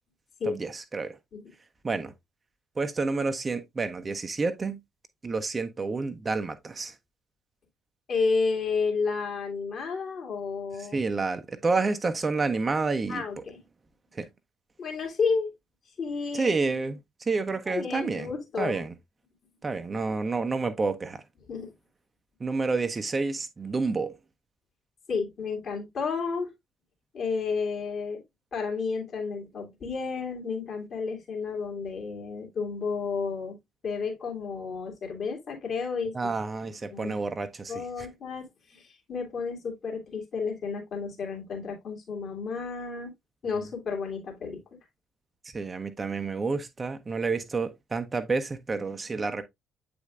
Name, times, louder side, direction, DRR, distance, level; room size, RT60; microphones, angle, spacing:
voice 1, 0.4-1.2 1.8-2.1 2.8-4.8 5.2-7.0 10.7-13.2 14.1-14.3 16.3-18.3 18.6-18.9 19.6-21.2 22.4-24.2 36.1-38.1 43.5-43.7 45.4-49.4, right 4 dB, 30° right, 0.8 m, -29 dB
voice 2, 8.1-11.0 13.1-13.6 14.8-15.5 16.0-16.8 17.7-18.8 21.5-21.7 25.1-26.5 27.1-28.2 28.5-33.6 33.8-36.1 36.9-37.2 37.7-43.1 43.4-44.6, left 5 dB, 45° left, 2.5 m, -31 dB
8.1 x 5.2 x 2.4 m
figure-of-eight pair, 45°, 0 cm